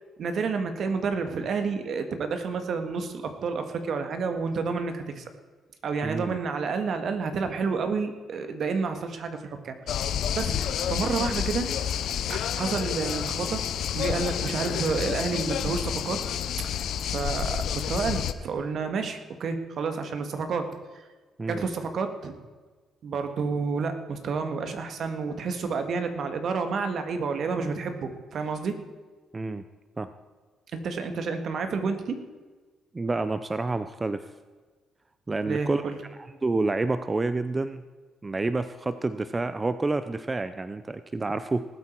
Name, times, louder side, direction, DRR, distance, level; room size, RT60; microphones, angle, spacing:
voice 1, 0.2-5.3 5.8-9.7 10.3-10.6 10.9-11.7 12.3-16.2 16.6-20.7 21.5-22.3 23.0-28.8 30.7-32.2 35.5-36.0, right 5 dB, 60° right, 7 dB, 1.7 m, -30 dB
voice 2, 6.0-6.4 21.4-21.6 29.3-29.6 30.0-30.1 32.9-34.3 35.3-35.8 36.4-37.8 38.2-41.7, right 3 dB, 25° right, 12 dB, 0.5 m, -28 dB
sound 1, 9.9-18.3, left 9 dB, 70° left, 0.6 m, -29 dB
19.0 x 8.3 x 4.6 m, 1.3 s
cardioid pair, 90°, 0 cm